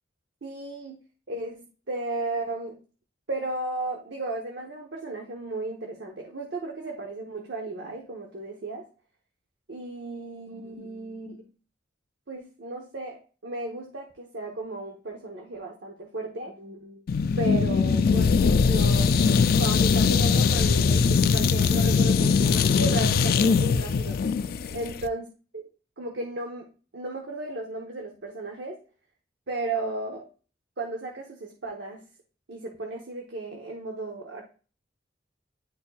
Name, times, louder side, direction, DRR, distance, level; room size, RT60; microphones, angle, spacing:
voice 1, 0.4-1.0 1.3-2.8 3.3-8.8 9.7-11.5 12.3-17.0 17.4-19.2 19.6-24.2 24.7-25.2 26.0-28.8 29.5-30.2 30.8-32.1 32.5-34.4, right 2 dB, 70° right, 0 dB, 0.9 m, -34 dB
sound 1, 17.1-25.1, left 5 dB, 55° left, 0.3 m, -21 dB
10.0 x 4.2 x 2.3 m, 0.37 s
head